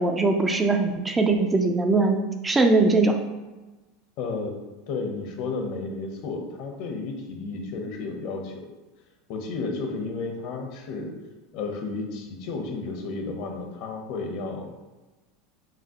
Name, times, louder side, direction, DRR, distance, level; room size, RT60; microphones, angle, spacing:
voice 1, 0.0-3.2, right 3 dB, 15° right, 4 dB, 0.3 m, -21 dB
voice 2, 4.2-4.6 4.9-8.7 9.3-11.1 11.5-14.9, left 3 dB, 60° left, 3 dB, 0.8 m, -32 dB
5.0 x 2.9 x 2.9 m, 1.2 s
supercardioid pair, 135°, 0 cm